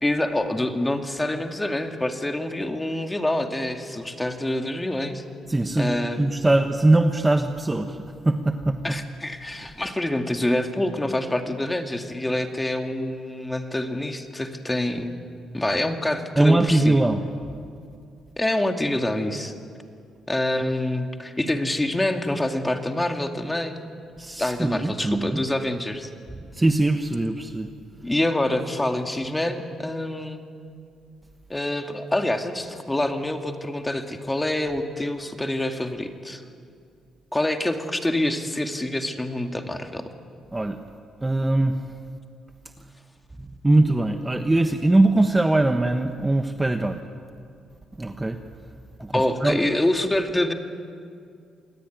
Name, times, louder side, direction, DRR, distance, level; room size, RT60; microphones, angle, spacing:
voice 1, 0.0-5.2 5.8-6.3 8.8-15.2 15.5-17.0 18.4-19.5 20.3-23.8 24.4-26.1 28.0-30.4 31.5-36.4 37.3-40.0 49.1-50.5, left 1 dB, 15° left, 5 dB, 2.2 m, -26 dB
voice 2, 5.5-9.0 16.4-17.2 24.2-25.4 26.3-27.7 40.5-40.8 41.2-41.9 43.4-47.0 48.0-48.4 49.0-49.7, right 2 dB, 15° right, 6 dB, 1.2 m, -22 dB
27.0 x 19.5 x 9.4 m, 2.3 s
cardioid pair, 90°, 0 cm